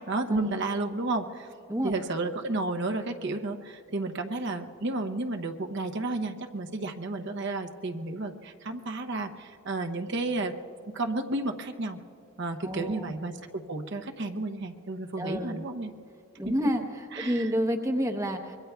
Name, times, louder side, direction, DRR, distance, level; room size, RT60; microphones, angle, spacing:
voice 1, 0.0-1.5 1.8-10.5 10.9-12.0 12.4-15.9 16.4-16.9 17.1-17.5, right 2 dB, 55° right, 5 dB, 0.7 m, -32 dB
voice 2, 12.6-13.1 15.2-15.6 16.4-18.6, equal, 15° right, 5 dB, 0.8 m, -29 dB
25.0 x 22.5 x 2.3 m, 2.5 s
head